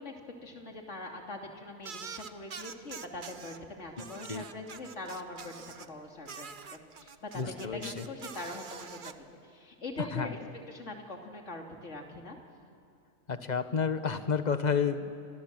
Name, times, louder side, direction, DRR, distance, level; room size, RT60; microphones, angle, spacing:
voice 1, 0.0-5.5 5.9-6.5 7.0-9.1 9.4-10.4 10.7-12.4, left 2 dB, 60° left, 2 dB, 3.1 m, -42 dB
sound 1, 1.8-3.6 4.0-5.9 6.2-9.1, right 6 dB, 40° right, 1.0 m, -45 dB
voice 2, 4.0-4.4 7.3-8.1 10.0-10.3 13.3-15.1, left 6 dB, 35° left, 10 dB, 1.2 m, -31 dB
28.5 x 25.5 x 7.6 m, 2.4 s
omnidirectional pair, 1.4 m